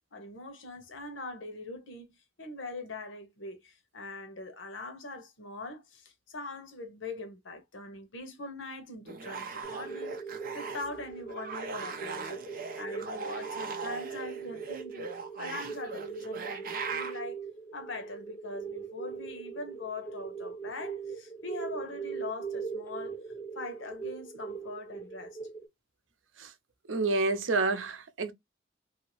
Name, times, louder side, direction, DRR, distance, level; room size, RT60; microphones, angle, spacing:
voice 1, 0.1-10.2 10.5-12.4 12.8-15.1 15.4-17.4 17.7-23.1 23.5-25.4, left 2 dB, 80° left, 0.9 m, -42 dB
sound 1, 9.1-11.0 11.3-17.2, right 5 dB, 50° right, 0.6 m, -40 dB
sound 2, 9.6-25.7, right 5 dB, 10° left, 0.6 m, -41 dB
voice 2, 26.9-28.3, right 3 dB, 85° right, 0.7 m, -28 dB
2.9 x 2.7 x 3.0 m
head